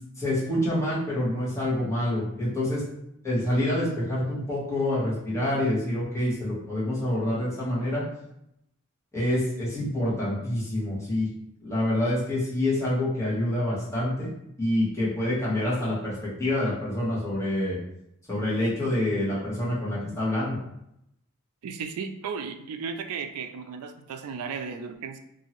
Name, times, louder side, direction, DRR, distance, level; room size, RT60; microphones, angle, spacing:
voice 1, 0.2-2.8 3.2-8.0 9.1-11.3 11.6-14.3 14.6-16.1 16.4-17.8 18.3-20.6, left 1 dB, 15° left, -9 dB, 1.2 m, -27 dB
voice 2, 21.6-25.2, right 6 dB, 80° right, 8 dB, 0.3 m, -35 dB
2.8 x 2.6 x 2.9 m, 0.79 s
head